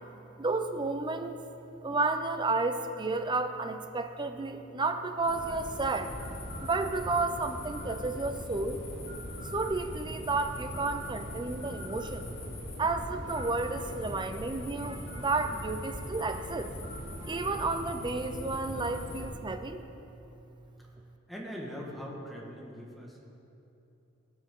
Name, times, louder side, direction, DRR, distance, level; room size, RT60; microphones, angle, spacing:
voice 1, 0.4-1.4 1.8-6.1 6.6-8.8 9.5-12.3 12.8-16.7 17.2-19.9, right 3 dB, 20° right, 7 dB, 0.6 m, -31 dB
sound 1, 5.2-19.3, left 1 dB, 55° left, 2.8 m, -40 dB
voice 2, 21.3-23.3, equal, ahead, -3 dB, 1.6 m, -41 dB
18.5 x 7.1 x 3.7 m, 2.9 s
head